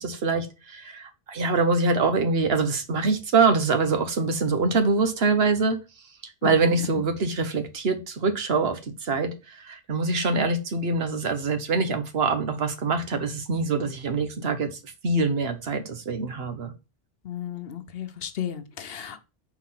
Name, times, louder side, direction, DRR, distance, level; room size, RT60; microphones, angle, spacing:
voice 1, 0.0-5.8 6.2-16.7, right 4 dB, 75° right, 1.2 m, -24 dB
voice 2, 17.3-19.2, left 10 dB, 70° left, 1.0 m, -33 dB
4.8 x 4.0 x 5.7 m
omnidirectional pair, 1.0 m